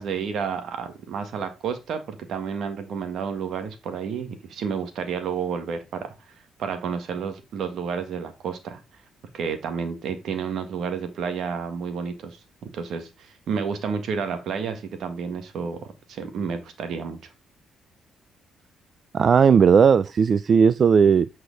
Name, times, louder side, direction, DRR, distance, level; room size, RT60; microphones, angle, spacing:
voice 1, 0.0-6.1 6.6-8.8 9.3-17.2, right 6 dB, 70° right, 1.7 m, -30 dB
voice 2, 19.1-21.3, right 6 dB, 50° right, 0.4 m, -16 dB
8.4 x 4.8 x 3.9 m
cardioid pair, 90°, 0 cm